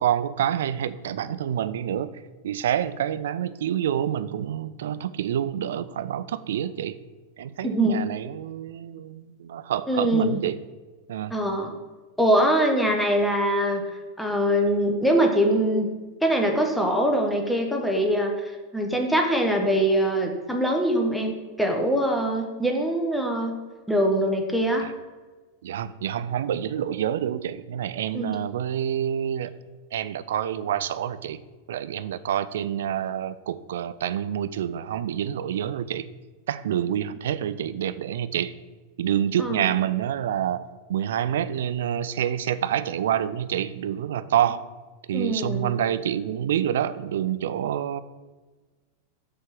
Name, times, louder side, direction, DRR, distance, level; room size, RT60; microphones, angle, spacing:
voice 1, 0.0-2.1 2.4-7.0 7.4-10.6 11.1-11.3 24.8-24.9 25.6-29.5 29.9-31.4 31.7-36.1 36.5-38.5 39.0-44.7 45.1-48.0, right 10 dB, 60° right, 14 dB, 0.3 m, -27 dB
voice 2, 7.6-8.1 9.9-10.4 11.3-11.7 12.2-13.8 14.2-15.9 16.2-23.5 23.9-24.8 28.1-28.3 39.4-39.6 45.1-45.8, right 1 dB, ahead, 2 dB, 0.9 m, -23 dB
6.5 x 3.7 x 6.0 m, 1.3 s
figure-of-eight pair, 90°, 0 cm